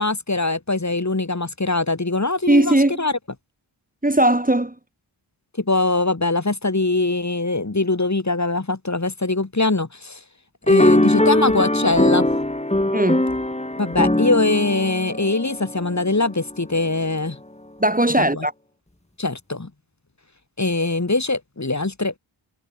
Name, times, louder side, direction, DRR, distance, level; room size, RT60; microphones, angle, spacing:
voice 1, 0.0-3.1 5.6-10.2 10.7-12.3 13.8-17.4 18.2-18.4 19.2-19.7 20.6-22.1, left 2 dB, 35° left, 4.2 m, -22 dB
voice 2, 2.5-3.0 4.0-4.7 12.9-13.2 17.8-18.5, right 1 dB, 15° right, 2.4 m, -18 dB
sound 1, 10.7-16.2, left 1 dB, 15° left, 2.9 m, -20 dB
wide cardioid pair, 80°, 50 cm